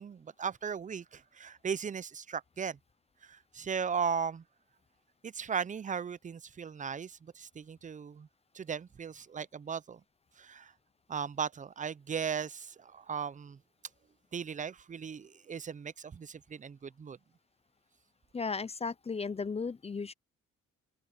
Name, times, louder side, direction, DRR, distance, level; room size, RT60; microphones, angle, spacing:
voice 1, 0.0-2.8 3.2-4.4 5.2-8.3 8.5-10.0 10.4-10.7 11.1-13.6 14.3-17.2, right 6 dB, 25° right, 0.5 m, -37 dB
voice 2, 18.3-20.1, left 4 dB, 20° left, 0.5 m, -35 dB
cardioid pair, 90°, 30 cm